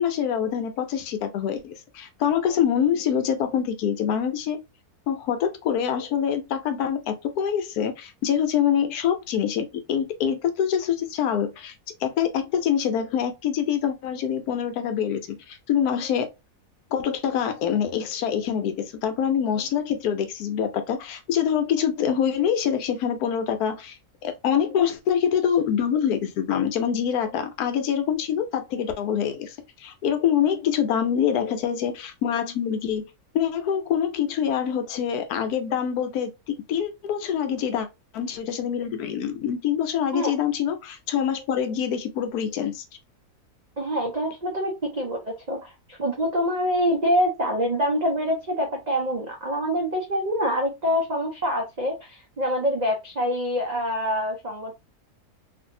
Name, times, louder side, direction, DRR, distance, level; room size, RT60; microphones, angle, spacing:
voice 1, 0.0-4.6 5.1-11.7 12.0-16.3 16.9-24.0 24.2-33.0 33.3-37.9 38.1-42.8, left 8 dB, 80° left, 1.1 m, -25 dB
voice 2, 43.8-54.7, equal, 65° right, 0.4 m, -25 dB
2.7 x 2.6 x 2.6 m
omnidirectional pair, 1.7 m